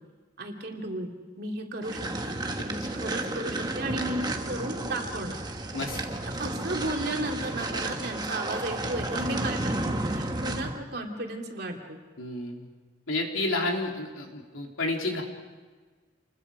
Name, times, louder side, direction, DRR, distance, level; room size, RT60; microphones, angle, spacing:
voice 1, 0.4-1.1 1.4-2.0 2.3-5.4 6.4-12.0, right 1 dB, 50° right, 1 dB, 2.8 m, -34 dB
sound 1, 1.8-10.8, right 2 dB, 20° right, 1.3 m, -32 dB
voice 2, 12.2-12.7 13.1-15.2, left 2 dB, 85° left, 1 dB, 3.4 m, -30 dB
28.5 x 21.0 x 5.1 m, 1.4 s
head